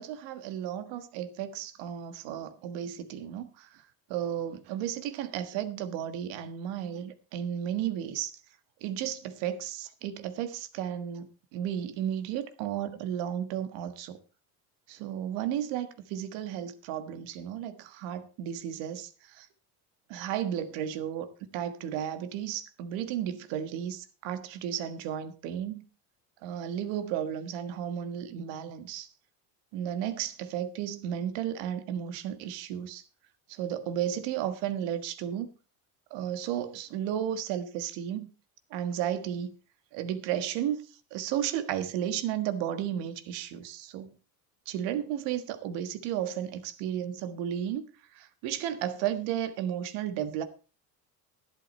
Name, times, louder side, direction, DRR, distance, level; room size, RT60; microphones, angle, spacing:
voice 1, 0.0-3.7 4.1-8.3 8.8-14.2 14.9-19.5 20.1-25.8 26.4-29.1 29.7-33.0 33.5-35.5 36.1-38.3 38.7-39.5 39.9-40.8 41.1-44.2 44.7-47.9 48.1-50.4, right 10 dB, 75° right, 1.6 m, -33 dB
11.5 x 11.0 x 4.3 m
supercardioid pair, 105°, 44 cm